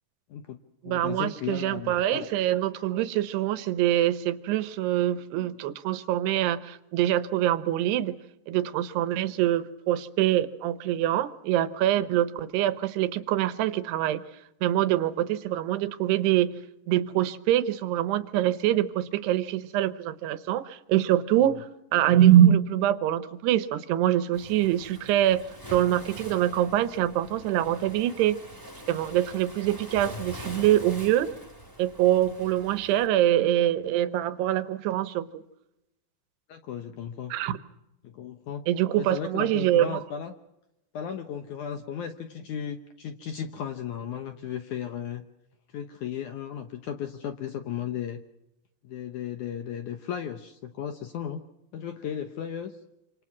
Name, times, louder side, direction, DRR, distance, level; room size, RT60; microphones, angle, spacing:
voice 1, 0.3-2.3 36.5-37.3 38.0-38.7 39.0-40.3 40.9-45.2 45.7-48.2 48.8-51.4 51.7-52.8, left 8 dB, 70° left, 8 dB, 1.8 m, -35 dB
voice 2, 0.8-8.2 8.5-14.2 14.6-16.5 16.9-21.7 21.9-28.4 28.9-31.3 31.8-35.4 37.3-37.6 38.7-40.0, right 12 dB, 80° right, 13 dB, 3.0 m, -24 dB
Waves surf, 24.3-33.1, equal, 5° left, 2.6 m, -44 dB
27.0 x 26.0 x 6.1 m, 0.90 s
omnidirectional pair, 4.8 m